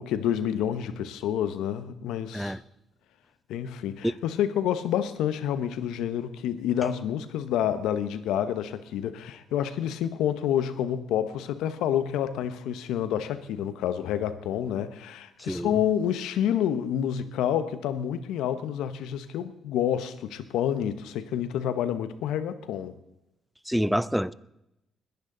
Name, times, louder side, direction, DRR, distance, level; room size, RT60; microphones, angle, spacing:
voice 1, 0.0-2.5 3.5-22.9, left 10 dB, 90° left, 1.0 m, -28 dB
voice 2, 23.7-24.3, equal, ahead, 0.5 m, -26 dB
21.0 x 10.5 x 3.9 m
cardioid pair, 90°, 0 cm